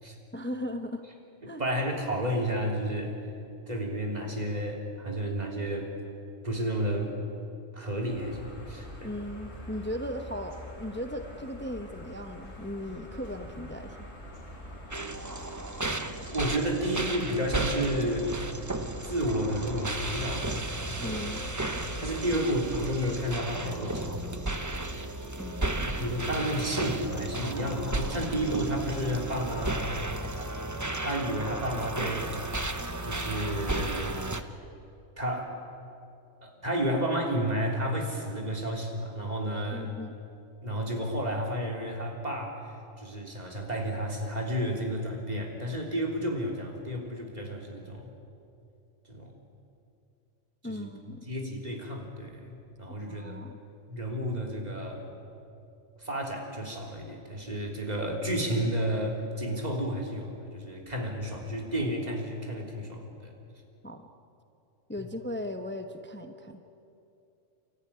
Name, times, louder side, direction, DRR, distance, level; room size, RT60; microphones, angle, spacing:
voice 1, 0.3-1.0 1.5-1.6 9.0-14.0 21.0-21.4 25.4-26.0 39.7-40.1 50.6-51.2 52.9-53.6 63.8-64.1 64.9-66.6, left 1 dB, 10° left, 6 dB, 1.0 m, -37 dB
voice 2, 1.4-3.2 3.7-5.9 6.4-7.1 7.7-9.1 16.3-18.4 19.0-21.3 22.0-24.3 25.8-29.8 30.3-30.5 31.0-32.5 33.0-34.2 35.2-35.6 36.4-39.9 40.6-48.1 49.1-49.3 50.6-50.9 51.3-53.4 53.9-55.1 56.0-63.3, equal, 30° right, 1 dB, 3.5 m, -31 dB
sound 1, 8.1-22.2, equal, 55° left, 4.8 m, -44 dB
sound 2, 14.9-34.4, right 2 dB, 15° right, 0.9 m, -34 dB
30.0 x 14.0 x 10.0 m, 2.6 s
omnidirectional pair, 1.3 m